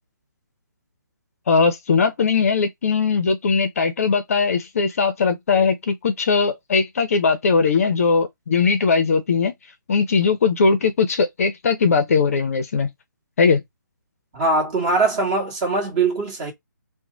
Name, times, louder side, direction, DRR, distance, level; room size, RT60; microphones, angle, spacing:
voice 1, 1.5-9.5 9.9-12.9 13.4-13.6, left 5 dB, 45° left, 0.6 m, -19 dB
voice 2, 14.3-16.5, right 3 dB, 25° right, 1.5 m, -21 dB
2.9 x 2.2 x 3.8 m
figure-of-eight pair, 150°, 11 cm